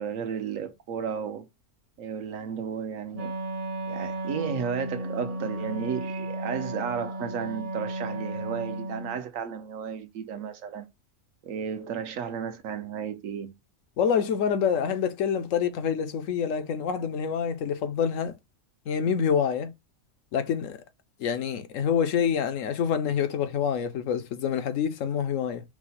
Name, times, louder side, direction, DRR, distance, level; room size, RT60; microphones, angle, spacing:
voice 1, 0.0-1.5 2.0-3.4 3.9-10.9 11.4-13.5, right 7 dB, 65° right, 1.1 m, -33 dB
Wind instrument woodwind instrument, 3.1-9.2, right 2 dB, 30° right, 0.8 m, -34 dB
voice 2, 14.0-18.4 18.9-19.7 20.3-20.8 21.2-25.6, left 7 dB, 65° left, 1.0 m, -26 dB
4.7 x 2.2 x 4.2 m
omnidirectional pair, 1.5 m